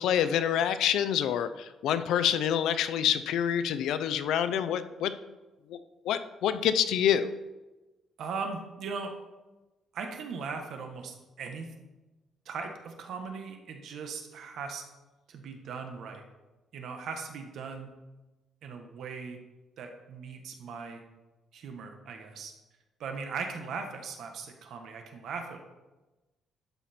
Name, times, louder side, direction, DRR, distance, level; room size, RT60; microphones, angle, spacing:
voice 1, 0.0-5.1 5.7-5.8 6.0-7.3, left 9 dB, 75° left, 11 dB, 0.6 m, -27 dB
voice 2, 8.2-9.1 9.9-11.7 12.4-14.8 15.3-16.2 16.7-17.9 18.6-19.4 19.8-21.0 21.5-22.5 23.0-25.6, right 5 dB, 60° right, 4 dB, 1.4 m, -39 dB
12.0 x 5.9 x 4.4 m, 1.1 s
cardioid pair, 155°, 0 cm